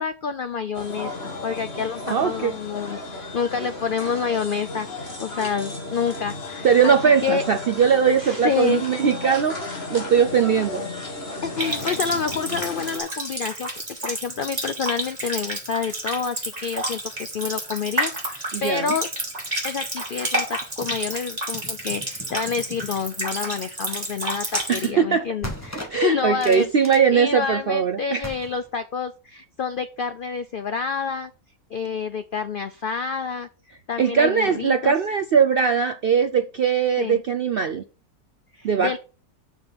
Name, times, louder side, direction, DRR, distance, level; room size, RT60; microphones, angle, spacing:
voice 1, 0.0-6.9 7.2-7.4 8.2-8.9 11.4-13.7 14.0-19.1 19.6-31.3 31.7-33.5 33.9-34.9 37.0-37.2 38.6-39.0, left 6 dB, 75° left, 0.4 m, -28 dB
sound 1, 0.7-13.0, left 2 dB, 40° left, 2.1 m, -34 dB
voice 2, 2.1-2.5 6.6-10.9 18.5-18.9 24.7-25.3 25.9-28.3 34.0-37.8 38.6-39.0, right 7 dB, 70° right, 0.5 m, -20 dB
Water tap faucet, 11.6-24.9, right 1 dB, 25° right, 3.0 m, -30 dB
sound 2, 20.8-21.1 21.5-23.0 24.5-24.7 25.4-27.6 28.2-28.7, equal, 10° left, 1.4 m, -38 dB
6.9 x 6.0 x 5.6 m
omnidirectional pair, 1.6 m